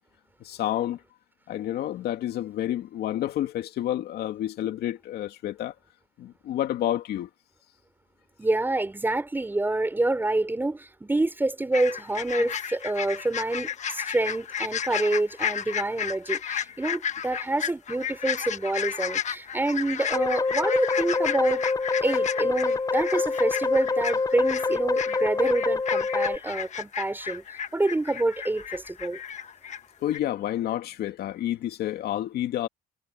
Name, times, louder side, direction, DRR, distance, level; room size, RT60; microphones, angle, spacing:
voice 1, 0.4-1.0 1.5-5.7 6.2-7.3 12.4-12.5 30.0-32.7, left 12 dB, 70° left, 2.5 m, -29 dB
voice 2, 8.4-21.6 22.0-27.4 27.7-29.2, right 2 dB, 10° right, 3.8 m, -27 dB
sound 1, 11.7-29.8 30.1-30.2, left 8 dB, 45° left, 1.4 m, -33 dB
sound 2, 20.1-26.4, left 4 dB, 20° left, 0.7 m, -26 dB
cardioid pair, 110°, 17 cm